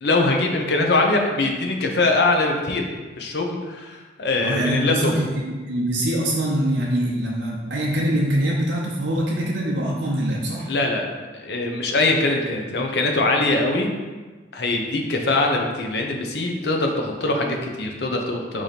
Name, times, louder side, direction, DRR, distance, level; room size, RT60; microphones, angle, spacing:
voice 1, 0.0-2.8 3.2-5.1 10.7-13.9 14.5-18.6, left 2 dB, 60° left, 2 dB, 0.6 m, -22 dB
voice 2, 4.4-10.7, right 1 dB, 75° right, -3 dB, 0.6 m, -23 dB
4.7 x 2.8 x 4.1 m, 1.3 s
head